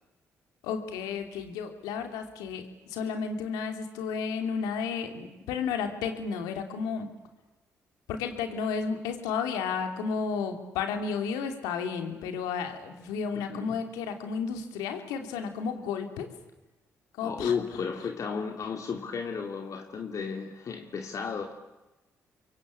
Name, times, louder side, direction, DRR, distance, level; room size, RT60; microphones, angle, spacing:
voice 1, 0.6-7.1 8.1-16.3 17.2-17.5, left 6 dB, 85° left, 6 dB, 3.1 m, -32 dB
voice 2, 17.2-21.5, left 6 dB, 60° left, 3 dB, 2.6 m, -33 dB
29.0 x 23.0 x 8.7 m, 1.1 s
supercardioid pair, 50°, 6 cm